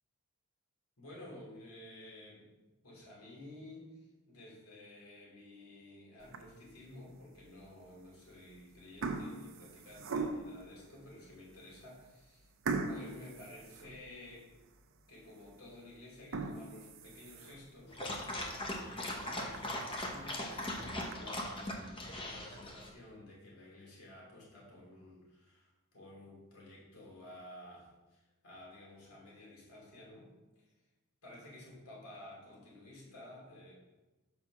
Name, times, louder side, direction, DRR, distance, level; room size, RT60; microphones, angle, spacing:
voice 1, 1.0-2.5 2.8-12.5 12.9-14.5 15.1-20.5 20.9-30.7 31.2-33.7, left 1 dB, 70° left, -4 dB, 2.7 m, -53 dB
sound 1, 6.2-6.7 7.3-7.4 8.3-8.5 8.8-10.7 11.3-11.4 11.7-11.9 12.7-14.4 14.8-14.9 15.4-15.5 16.1-17.7 18.2-18.3 18.7-18.8 19.1-19.2 19.5-19.6 20.5-21.1, right 3 dB, 60° right, 0.6 m, -40 dB
Dog, 17.9-22.9, left 1 dB, 25° left, 0.9 m, -39 dB
5.8 x 4.7 x 5.9 m, 1.1 s
head